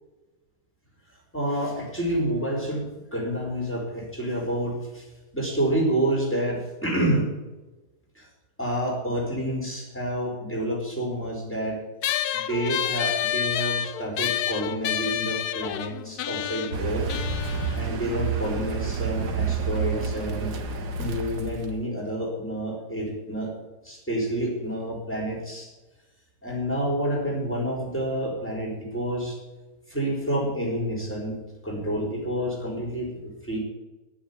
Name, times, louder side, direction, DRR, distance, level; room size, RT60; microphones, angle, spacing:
voice 1, 1.3-5.0 5.3-7.3 8.1-8.3 8.6-11.8 12.3-17.0 17.7-20.5 21.0-23.5 23.8-25.7 26.4-29.4 29.9-33.6, right 1 dB, 5° left, -2 dB, 4.9 m, -28 dB
sound 1, 12.0-18.8, left 11 dB, 70° left, 1.2 m, -29 dB
Car, 16.7-21.9, right 5 dB, 75° right, 1.9 m, -29 dB
11.0 x 9.9 x 8.3 m, 1.1 s
omnidirectional pair, 1.8 m